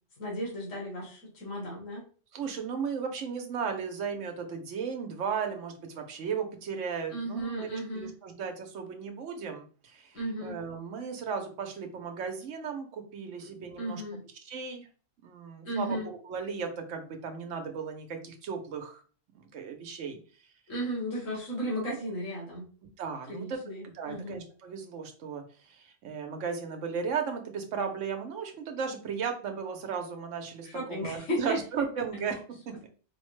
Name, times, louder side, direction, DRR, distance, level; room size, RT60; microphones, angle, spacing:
voice 1, 0.2-2.0 7.1-8.1 10.1-10.6 13.8-14.2 15.7-16.1 20.7-22.7 23.3-24.4 30.6-31.6, equal, 85° left, -3 dB, 1.8 m, -35 dB
voice 2, 2.3-14.0 14.4-14.9 15.2-19.0 19.3-20.2 23.0-23.6 23.8-32.9, right 6 dB, 80° right, 4 dB, 1.1 m, -36 dB
4.8 x 2.1 x 3.1 m, 0.40 s
omnidirectional pair, 1.3 m